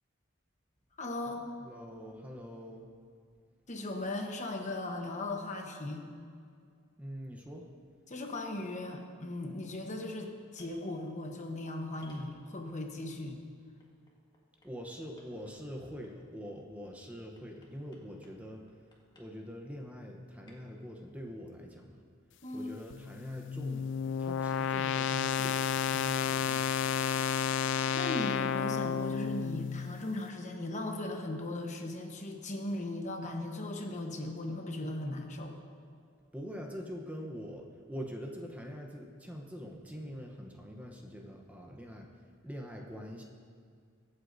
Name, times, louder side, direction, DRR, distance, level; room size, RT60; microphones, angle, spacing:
voice 1, 1.0-1.5 3.7-6.1 8.1-13.4 13.7-13.8 22.4-22.7 27.9-35.6, left 2 dB, 35° left, 3 dB, 1.0 m, -38 dB
voice 2, 1.7-2.9 7.0-7.7 14.6-18.6 19.2-21.9 22.5-23.9 24.2-26.7 36.3-43.2, equal, 10° right, 1 dB, 0.8 m, -44 dB
maderas cayendo, 10.6-10.8 12.0-12.8 13.8-14.7 15.2-16.3 17.4-18.4 18.7-19.3 20.5-20.6, left 2 dB, 20° left, 1.8 m, -60 dB
sound 1, 22.9-30.0, left 7 dB, 65° left, 0.3 m, -31 dB
23.5 x 8.0 x 2.7 m, 2.2 s
head